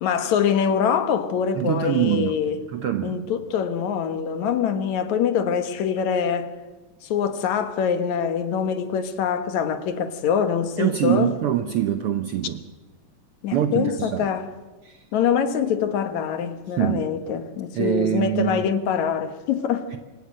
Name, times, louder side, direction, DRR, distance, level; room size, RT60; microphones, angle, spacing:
voice 1, 0.0-2.6 3.0-6.5 7.0-11.3 13.4-14.5 15.1-19.9, left 7 dB, 70° left, 2.5 m, -24 dB
voice 2, 1.6-2.4 2.7-3.2 10.8-12.6 13.5-14.3 14.8-15.0 16.8-17.0 17.7-18.7 19.9-20.0, right 11 dB, 70° right, 1.4 m, -24 dB
27.0 x 15.5 x 6.4 m
omnidirectional pair, 3.6 m